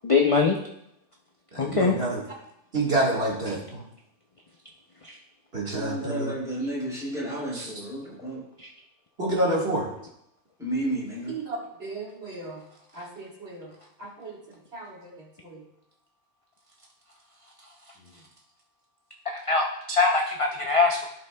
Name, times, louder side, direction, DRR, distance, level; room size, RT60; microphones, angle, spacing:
voice 1, 0.0-0.6 1.6-2.0 5.0-5.2 7.5-7.7 8.6-8.7 19.3-21.1, left 4 dB, 40° left, 2 dB, 0.5 m, -23 dB
voice 2, 1.5-2.2 2.7-3.8 5.5-6.3 7.8-7.9 9.2-9.9 11.3-12.6 12.9-13.7 14.0-14.3 14.7-15.1 15.4-15.6, right 2 dB, 55° right, -4 dB, 1.9 m, -29 dB
voice 3, 5.7-8.4 10.6-11.3, right 1 dB, 5° right, -6 dB, 3.4 m, -32 dB
15.5 x 5.3 x 2.2 m, 0.79 s
omnidirectional pair, 1.3 m